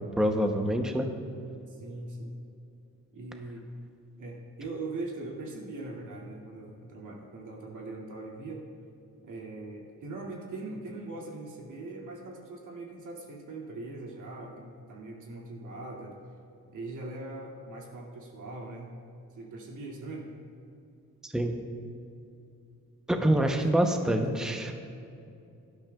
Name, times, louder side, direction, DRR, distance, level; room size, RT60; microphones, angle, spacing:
voice 1, 0.2-1.1 21.2-21.5 23.1-24.7, right 1 dB, ahead, 4 dB, 0.7 m, -26 dB
voice 2, 1.7-2.3 3.1-3.7 4.2-8.6 9.2-16.2 16.7-18.9 19.3-20.3 23.1-24.2, right 2 dB, 85° right, -2 dB, 2.4 m, -41 dB
17.5 x 12.0 x 2.3 m, 2.6 s
wide cardioid pair, 130°, 30 cm